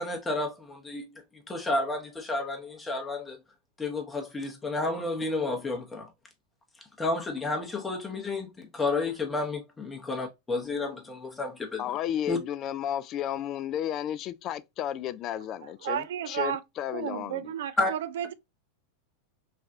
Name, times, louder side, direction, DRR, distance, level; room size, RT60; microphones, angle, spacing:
voice 1, 0.0-3.4 3.8-6.1 7.0-11.8 12.3-12.4 17.8-17.9, left 2 dB, 15° left, 0.8 m, -31 dB
voice 2, 11.8-17.5, left 11 dB, 40° left, 0.3 m, -33 dB
voice 3, 15.8-16.6 16.9-18.3, right 10 dB, 75° right, 0.3 m, -32 dB
3.2 x 2.3 x 2.5 m
hypercardioid pair, 100°, 0 cm